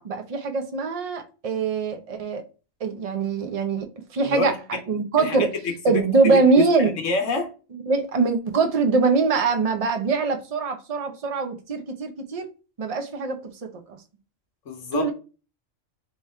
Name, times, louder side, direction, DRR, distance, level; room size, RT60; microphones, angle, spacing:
voice 1, 0.0-2.4 2.8-3.9 4.1-4.5 4.9-5.5 5.8-6.9 7.9-12.5 12.8-13.4 13.9-14.0 14.9-15.1, right 4 dB, 40° right, 0.6 m, -22 dB
voice 2, 4.2-4.8 5.2-6.0 6.3-7.5 14.7-15.1, left 3 dB, 75° left, 1.2 m, -27 dB
3.8 x 3.1 x 4.2 m
omnidirectional pair, 1.3 m